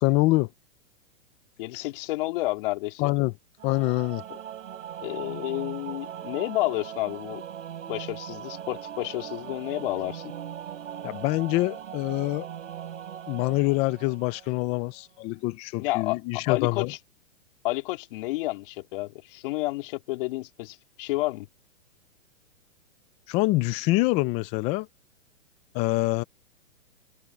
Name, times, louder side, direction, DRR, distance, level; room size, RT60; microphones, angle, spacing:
voice 1, 0.0-0.5 3.0-3.3 3.6-4.2 11.0-12.5 13.3-16.9 23.3-24.9 25.7-26.2, left 20 dB, 15° left, 0.5 m, -25 dB
voice 2, 1.6-3.1 5.0-7.4 7.9-10.3 15.8-17.0 17.6-21.5, left 20 dB, 45° left, 3.2 m, -30 dB
Singing / Musical instrument, 3.6-14.9, right 10 dB, 75° right, 3.7 m, -40 dB
hypercardioid pair, 150°, 38 cm